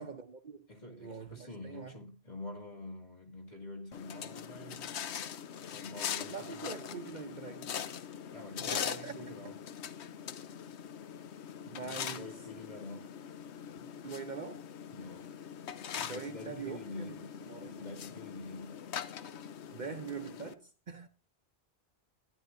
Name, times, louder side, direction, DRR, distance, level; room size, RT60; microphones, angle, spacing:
voice 1, 0.0-1.9 6.3-7.8 8.6-9.3 11.6-12.3 14.0-14.7 15.9-17.2 17.5-17.9 19.7-21.1, right 5 dB, 50° right, 0.8 m, -44 dB
voice 2, 0.7-5.2 5.7-6.8 8.3-9.6 11.8-13.1 13.8-13.9 14.9-15.3 16.0-17.3 17.6-18.8, left 2 dB, 40° left, 2.3 m, -47 dB
sound 1, 3.9-20.5, left 8 dB, 85° left, 1.0 m, -42 dB
13.0 x 10.0 x 2.6 m
omnidirectional pair, 1.1 m